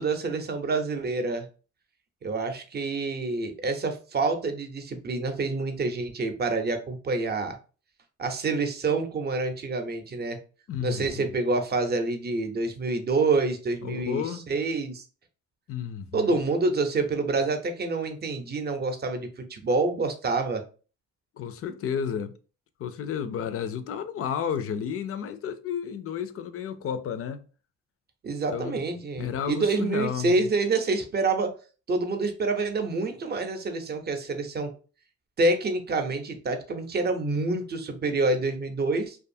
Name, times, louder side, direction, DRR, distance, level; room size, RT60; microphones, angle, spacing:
voice 1, 0.0-1.5 2.2-7.6 8.2-10.4 10.8-15.0 16.1-20.6 28.2-31.5 31.9-34.7 35.4-39.2, right 3 dB, 35° right, 0.6 m, -27 dB
voice 2, 10.7-11.2 13.8-14.5 15.7-16.4 21.4-22.4 22.8-27.4 28.5-28.8 29.2-30.4, left 8 dB, 50° left, 0.4 m, -32 dB
2.6 x 2.3 x 2.6 m
cardioid pair, 90°, 30 cm